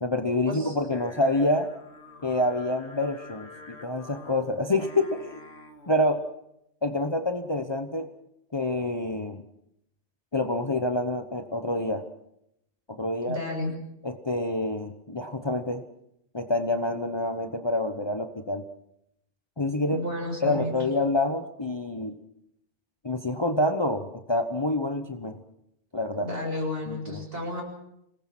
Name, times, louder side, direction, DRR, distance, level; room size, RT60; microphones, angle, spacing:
voice 1, 0.0-1.7 2.2-5.4 5.9-6.2 6.8-8.1 8.5-9.4 10.3-12.1 12.9-13.4 14.0-15.8 16.3-18.6 19.6-20.0 20.4-22.2 23.0-25.4 25.9-26.3 26.9-27.2, left 1 dB, 25° left, 7 dB, 1.0 m, -27 dB
Singing, 0.9-6.1, left 2 dB, 65° left, 2.3 m, -48 dB
voice 2, 13.2-13.7 19.9-20.7 26.2-27.6, left 2 dB, 55° right, 1 dB, 7.3 m, -32 dB
26.0 x 19.0 x 6.1 m, 0.78 s
omnidirectional pair, 1.2 m